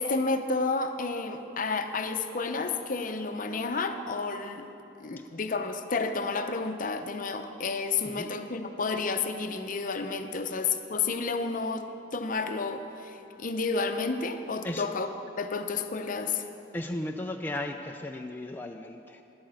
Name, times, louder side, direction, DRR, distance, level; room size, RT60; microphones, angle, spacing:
voice 1, 0.0-4.7 5.0-11.9 12.1-15.1 15.4-16.5, left 4 dB, 45° left, 7 dB, 0.7 m, -31 dB
voice 2, 16.7-19.2, left 1 dB, 10° left, 3 dB, 0.4 m, -35 dB
10.5 x 9.0 x 7.6 m, 2.9 s
head